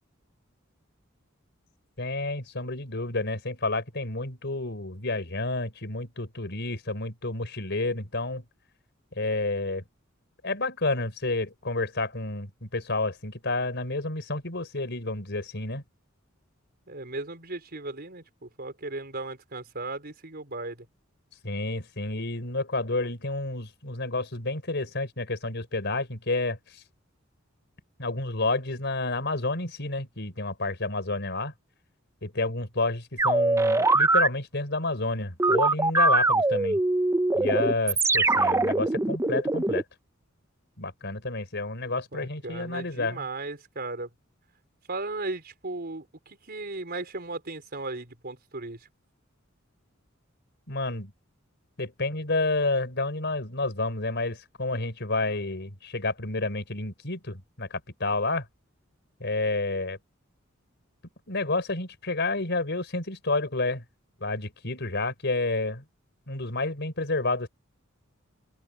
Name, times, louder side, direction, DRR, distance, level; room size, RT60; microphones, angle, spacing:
voice 1, 2.0-8.4 9.2-9.8 10.4-15.8 21.4-26.8 28.0-31.5 32.2-36.8 37.3-39.8 40.8-43.2 50.7-51.1 51.8-58.4 59.2-60.0 61.3-63.8 64.2-65.8 66.3-67.5, left 2 dB, 60° left, 4.8 m, -30 dB
voice 2, 16.9-20.9 42.1-44.1 44.9-48.8, right 2 dB, 50° right, 4.7 m, -36 dB
sound 1, 33.2-34.3 35.4-39.8, right 2 dB, 15° right, 0.7 m, -22 dB
open air
head